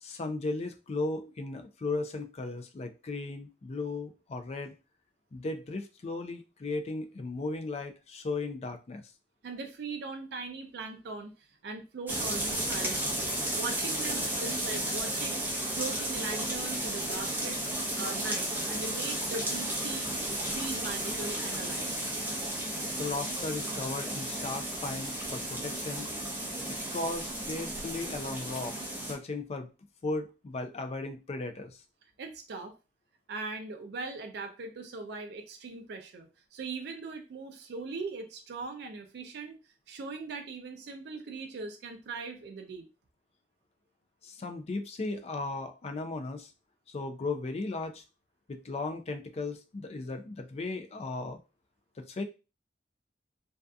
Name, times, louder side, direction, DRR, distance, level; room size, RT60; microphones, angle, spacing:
voice 1, 0.0-4.7 5.3-9.0 23.0-26.1 26.7-29.7 30.0-31.8 44.2-46.5 46.9-48.0 48.5-51.4 52.0-52.2, left 3 dB, 35° left, 7 dB, 0.4 m, -36 dB
voice 2, 9.4-13.3 13.5-15.4 15.8-17.6 18.0-20.1 20.6-21.9 32.2-32.7 33.3-39.6 39.9-42.9, right 4 dB, 65° right, 5 dB, 0.4 m, -40 dB
sound 1, 12.1-29.1, right 1 dB, 10° right, 0.6 m, -33 dB
2.6 x 2.3 x 2.3 m, 0.30 s
head